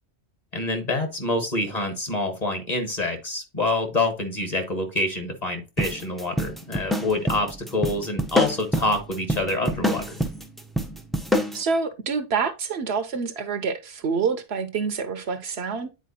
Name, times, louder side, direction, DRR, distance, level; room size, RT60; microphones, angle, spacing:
voice 1, 0.5-10.0, left 2 dB, 35° left, 1.5 m, -26 dB
sound 1, 5.8-11.6, equal, ahead, 0.5 m, -26 dB
voice 2, 11.5-15.9, right 5 dB, 65° right, 0.9 m, -27 dB
9.3 x 4.4 x 2.8 m
omnidirectional pair, 1.2 m